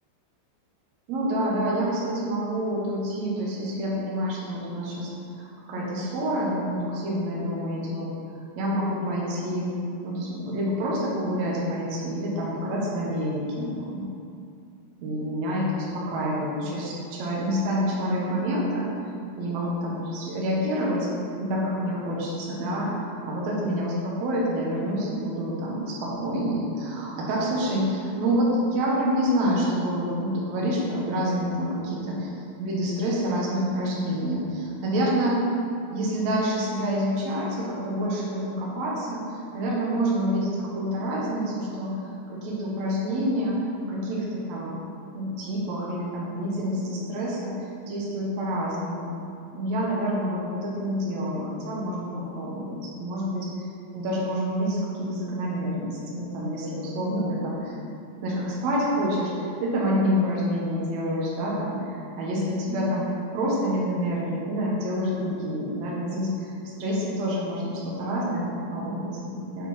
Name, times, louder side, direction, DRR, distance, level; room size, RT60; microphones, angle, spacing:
voice 1, 1.1-5.1 5.4-8.1 8.5-9.7 10.0-14.1 15.0-18.9 19.3-21.1 21.4-32.3 32.6-35.4 35.9-43.6 43.9-44.8 45.1-47.5 47.9-49.1 49.5-53.5 53.9-57.7 58.2-63.1 63.3-69.7, equal, 80° right, -5 dB, 1.5 m, -27 dB
7.8 x 4.8 x 5.5 m, 2.5 s
omnidirectional pair, 5.2 m